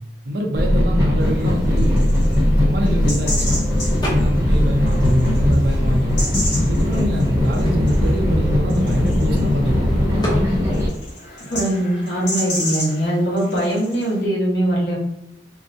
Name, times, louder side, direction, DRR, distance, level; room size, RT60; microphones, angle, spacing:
voice 1, 0.2-2.2 2.6-3.5 4.0-6.2 6.6-10.1, equal, 60° right, 1 dB, 0.5 m, -24 dB
sound 1, 0.5-10.9, left 1 dB, 15° right, 0.7 m, -19 dB
sound 2, 1.2-14.2, left 1 dB, 90° left, 1.2 m, -33 dB
sound 3, 4.0-4.6 4.9-6.2 6.8-6.9 7.1-9.4 10.2-10.5, equal, 20° left, 0.7 m, -31 dB
voice 2, 11.5-15.0, right 1 dB, 65° left, -4 dB, 1.0 m, -21 dB
2.4 x 2.0 x 2.5 m, 0.83 s
head